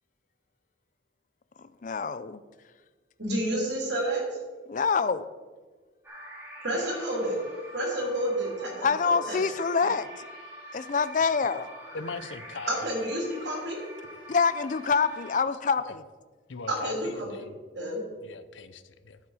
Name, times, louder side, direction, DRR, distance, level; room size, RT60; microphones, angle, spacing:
voice 1, 1.6-2.4 4.7-5.2 8.8-10.1 10.7-11.7 14.3-16.1, left 5 dB, 45° left, 14 dB, 0.4 m, -26 dB
voice 2, 3.2-4.4 6.6-7.4 7.7-8.9 9.3-9.4 12.7-13.8 16.7-17.5 17.7-18.0, right 1 dB, 65° right, -2 dB, 3.2 m, -30 dB
sound 1, 6.0-15.4, equal, 10° right, 2.6 m, -45 dB
voice 3, 11.9-12.7 15.8-16.0 16.5-17.5 18.2-19.2, left 4 dB, 85° left, 13 dB, 0.7 m, -40 dB
10.5 x 7.4 x 4.8 m, 1.4 s
head